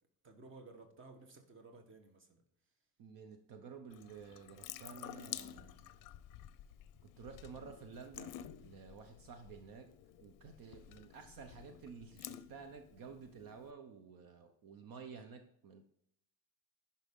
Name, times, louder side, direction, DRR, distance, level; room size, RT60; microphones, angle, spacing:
voice 1, 0.2-2.4, right 3 dB, 30° right, 5 dB, 1.2 m, -56 dB
voice 2, 3.0-5.9 7.0-9.9 10.2-15.8, right 5 dB, 65° right, 7 dB, 0.9 m, -52 dB
Water tap faucet / Sink (filling or washing) / Drip, 3.9-13.7, left 12 dB, 60° left, 0.5 m, -51 dB
10.0 x 5.6 x 3.6 m, 0.73 s
cardioid pair, 175°, 38 cm